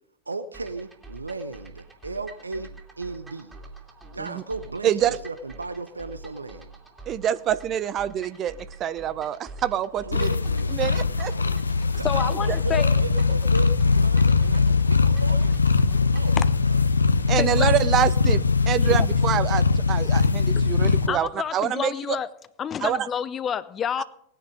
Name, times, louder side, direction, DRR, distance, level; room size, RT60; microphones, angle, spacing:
voice 1, 0.3-3.5 4.1-6.7 10.0-11.5 11.9-15.5 16.1-16.4 16.6-16.8, right 3 dB, 80° right, 12 dB, 0.6 m, -35 dB
sound 1, 0.5-16.4, right 2 dB, 15° right, 2.7 m, -44 dB
voice 2, 4.8-5.2 7.1-10.3 10.7-11.3 12.5-12.6 17.3-22.2 22.8-23.0, right 10 dB, 30° right, 16 dB, 0.5 m, -26 dB
sound 2, 10.1-21.1, left 4 dB, 75° left, 0.7 m, -21 dB
voice 3, 12.0-12.9 16.4-16.5 17.3-17.7 18.9-19.0 20.6-20.7 21.1-22.3 22.6-24.0, left 8 dB, 25° left, 17 dB, 0.6 m, -29 dB
19.0 x 9.7 x 5.0 m, 0.71 s
figure-of-eight pair, 90°, 0 cm